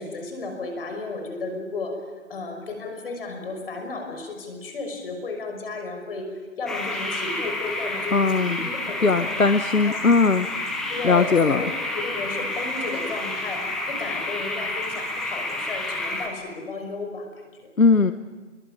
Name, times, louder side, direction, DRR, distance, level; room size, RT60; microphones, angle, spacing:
voice 1, 0.0-2.0 2.3-9.4 9.8-10.3 10.9-17.7, left 3 dB, 45° left, 4 dB, 5.9 m, -34 dB
sound 1, 6.7-16.3, left 2 dB, ahead, 1.1 m, -30 dB
voice 2, 8.1-8.6 9.0-10.5 11.0-11.6 17.8-18.1, left 4 dB, 85° left, 10 dB, 1.3 m, -19 dB
27.0 x 23.5 x 8.9 m, 1.3 s
figure-of-eight pair, 155°, 40 cm